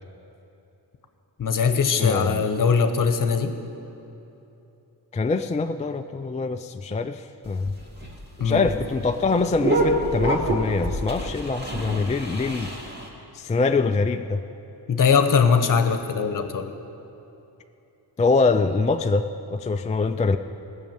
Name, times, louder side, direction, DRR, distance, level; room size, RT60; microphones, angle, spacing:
voice 1, 1.4-3.6 8.4-8.7 14.9-16.7, left 6 dB, 50° left, 8 dB, 1.0 m, -21 dB
voice 2, 2.0-2.5 5.1-7.8 8.4-12.7 13.3-14.4 18.2-20.4, left 4 dB, 20° left, 7 dB, 0.3 m, -24 dB
sound 1, 7.4-13.1, right 1 dB, 25° right, 2.4 m, -27 dB
17.0 x 6.5 x 8.9 m, 2.9 s
cardioid pair, 105°, 41 cm